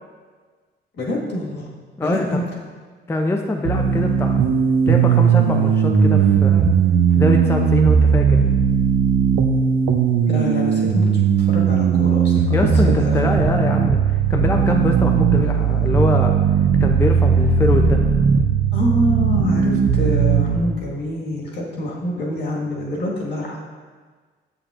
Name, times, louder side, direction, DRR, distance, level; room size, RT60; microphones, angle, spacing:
voice 1, 0.9-1.7 2.0-2.5 10.3-11.1 11.4-13.3 18.7-23.6, left 1 dB, 60° left, -3 dB, 1.6 m, -25 dB
voice 2, 2.0-2.4 3.1-4.4 4.9-6.6 7.1-8.4 12.5-16.3 16.8-18.0, left 2 dB, 10° left, 2 dB, 0.4 m, -23 dB
sound 1, 3.6-20.6, right 6 dB, 85° right, 0.5 m, -17 dB
7.2 x 6.8 x 2.4 m, 1.5 s
cardioid pair, 90°, 20 cm